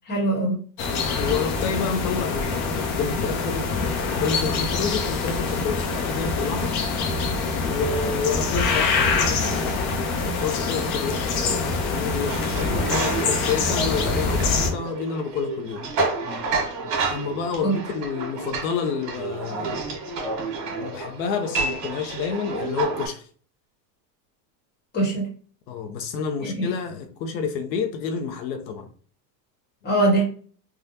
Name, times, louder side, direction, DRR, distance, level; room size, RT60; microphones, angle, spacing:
voice 1, 0.1-0.6 17.6-17.8 24.9-25.3 26.4-26.7 29.8-30.2, right 2 dB, 20° left, 1.2 m, -22 dB
sound 1, 0.8-14.7, left 4 dB, 45° left, 0.7 m, -25 dB
voice 2, 1.1-6.8 7.7-15.9 17.1-19.9 20.8-23.3 25.7-28.9, left 5 dB, 85° left, 0.8 m, -29 dB
sound 2, 12.3-23.1, right 3 dB, 55° right, 1.5 m, -30 dB
3.5 x 2.3 x 2.7 m
supercardioid pair, 135°, 50 cm